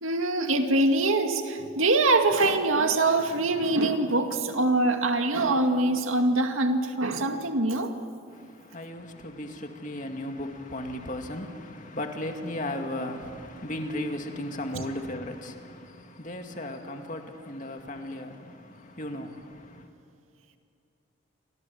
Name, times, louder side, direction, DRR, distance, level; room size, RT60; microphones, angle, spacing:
voice 1, 0.0-7.9, right 2 dB, 90° right, 2.2 m, -24 dB
voice 2, 8.3-19.9, left 1 dB, 40° left, 2.3 m, -36 dB
29.5 x 25.5 x 7.2 m
head